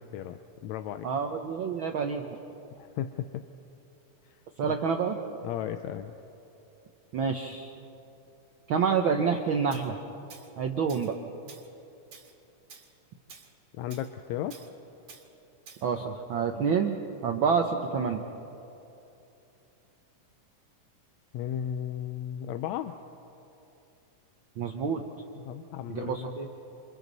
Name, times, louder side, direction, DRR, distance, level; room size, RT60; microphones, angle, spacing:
voice 1, 0.0-1.1 2.8-3.4 4.7-4.8 5.4-6.1 13.7-14.6 21.3-22.9 25.4-26.3, left 10 dB, 75° left, 9 dB, 1.7 m, -35 dB
voice 2, 1.0-2.2 4.6-5.2 7.1-7.7 8.7-10.0 10.6-11.1 15.8-17.0 17.2-18.2 24.6-25.0 25.9-26.5, right 6 dB, 85° right, 4 dB, 1.1 m, -28 dB
Tools, 9.7-9.9 10.3-10.5 10.9-11.2 11.5-11.7 12.1-12.3 12.7-12.9 13.3-13.5 13.9-14.1 14.5-14.7 15.1-15.3 15.7-15.9, right 5 dB, 55° right, 2.7 m, -50 dB
28.0 x 27.0 x 4.1 m, 2.8 s
omnidirectional pair, 3.6 m